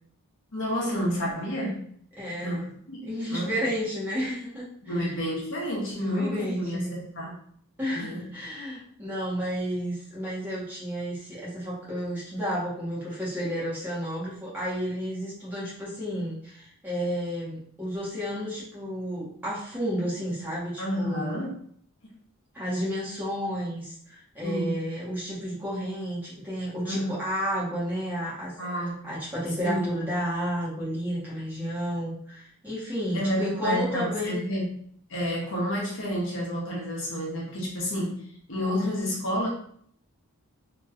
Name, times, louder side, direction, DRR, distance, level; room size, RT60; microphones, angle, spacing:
voice 1, 0.5-1.9 2.4-3.0 3.3-3.5 4.8-7.4 7.9-8.3 20.8-21.5 24.4-24.8 26.8-27.1 28.6-29.1 29.6-29.9 33.1-34.7 35.1-39.5, equal, 55° left, -4 dB, 1.1 m, -30 dB
voice 2, 2.2-2.7 3.1-5.1 5.9-6.9 7.8-21.4 22.5-28.5 29.0-34.4, equal, 10° right, -9 dB, 1.2 m, -31 dB
2.9 x 2.8 x 2.4 m, 0.62 s
head